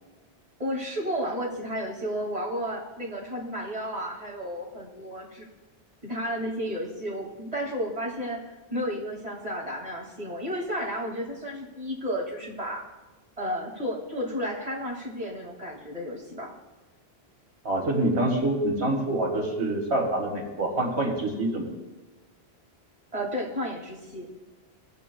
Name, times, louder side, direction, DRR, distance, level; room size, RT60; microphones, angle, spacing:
voice 1, 0.6-5.5 6.0-12.8 13.4-16.5 23.1-24.3, equal, 35° right, -3 dB, 2.2 m, -32 dB
voice 2, 17.6-21.7, right 1 dB, 80° right, -1 dB, 2.3 m, -26 dB
18.5 x 8.2 x 2.3 m, 1.2 s
omnidirectional pair, 1.1 m